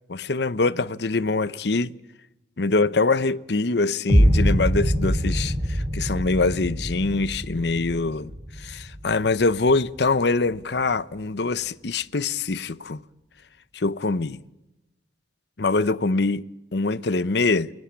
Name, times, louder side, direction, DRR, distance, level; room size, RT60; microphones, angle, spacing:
voice 1, 0.1-1.9 2.6-8.3 8.6-13.0 13.7-14.4 15.6-16.4 16.7-17.7, left 3 dB, 65° left, 0.8 m, -24 dB
sound 1, 4.1-10.1, equal, 25° right, 2.7 m, -24 dB
29.0 x 17.5 x 8.5 m
head